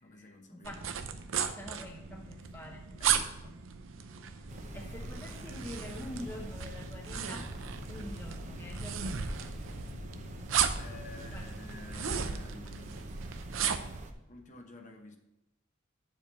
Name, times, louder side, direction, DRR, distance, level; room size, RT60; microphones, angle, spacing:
voice 1, 0.0-0.8 3.0-3.3 10.7-13.1 14.2-15.2, left 2 dB, 40° left, 4 dB, 1.1 m, -50 dB
sound 1, 0.6-14.0, right 7 dB, 90° right, 0.7 m, -36 dB
voice 2, 1.5-3.2 4.7-7.5 7.9-9.4 11.3-11.4, left 1 dB, 10° left, 0 dB, 0.8 m, -45 dB
sound 2, 4.5-11.5, left 2 dB, 85° left, 0.8 m, -48 dB
sound 3, 4.5-14.1, right 1 dB, 40° right, 0.8 m, -45 dB
7.1 x 5.1 x 6.8 m, 0.92 s
head